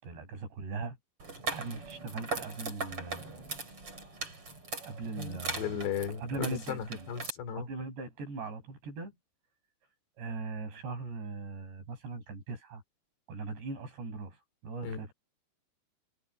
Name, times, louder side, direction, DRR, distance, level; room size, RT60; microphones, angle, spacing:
voice 1, 0.0-1.0 1.5-3.5 4.8-5.7 6.2-7.1 7.6-9.1 10.2-12.8 13.3-15.1, right 3 dB, 90° right, 8.7 m, -40 dB
sound 1, 1.2-7.3, right 3 dB, 35° right, 6.7 m, -40 dB
voice 2, 5.2-7.7 14.8-15.0, left 8 dB, 85° left, 5.2 m, -36 dB
omnidirectional pair, 4.8 m